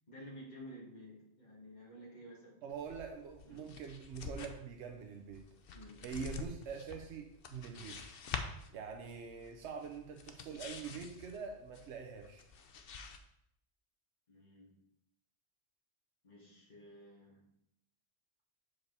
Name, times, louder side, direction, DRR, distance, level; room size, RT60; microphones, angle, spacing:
voice 1, 0.1-2.6 3.4-3.7 5.7-6.0 14.3-14.8 16.2-17.5, equal, 40° left, -4 dB, 2.2 m, -53 dB
voice 2, 2.6-5.5 6.0-8.0 8.7-12.4, right 6 dB, 90° right, 4 dB, 1.0 m, -45 dB
sound 1, 2.7-13.2, left 5 dB, 60° left, 0.8 m, -48 dB
6.9 x 5.3 x 4.0 m, 0.77 s
omnidirectional pair, 1.1 m